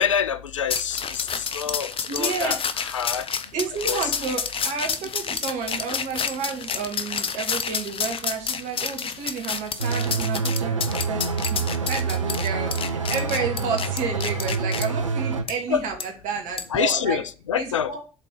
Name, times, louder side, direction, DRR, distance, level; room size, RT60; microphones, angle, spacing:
voice 1, 0.0-3.3 3.9-4.1 15.7-15.9 16.7-17.9, left 8 dB, 80° left, 0.4 m, -26 dB
sound 1, 0.7-14.9 15.5-15.6 16.0-16.1 16.6-16.8, left 6 dB, 35° left, 0.7 m, -29 dB
voice 2, 2.1-2.6 3.5-11.2 11.5-17.2 17.6-18.0, right 5 dB, 55° right, 2.2 m, -31 dB
sound 2, 9.8-15.4, right 4 dB, 85° right, 0.5 m, -27 dB
7.9 x 4.0 x 6.5 m
figure-of-eight pair, 50°, 16 cm